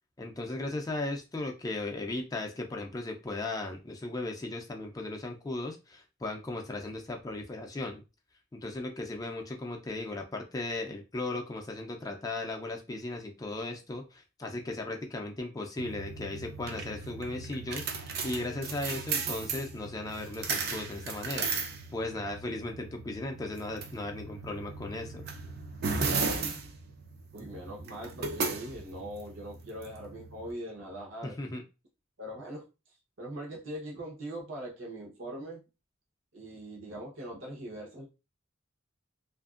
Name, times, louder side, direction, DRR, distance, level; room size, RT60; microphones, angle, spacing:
voice 1, 0.2-8.0 8.5-21.5 21.9-25.3 31.2-31.6, left 2 dB, 20° left, 3 dB, 0.4 m, -36 dB
sound 1, 15.8-30.5, right 4 dB, 50° right, 0.4 m, -36 dB
voice 2, 27.3-31.4 32.2-32.6 33.2-35.6 36.3-38.1, right 1 dB, 70° right, -1 dB, 0.9 m, -41 dB
2.7 x 2.5 x 2.4 m, 0.28 s
head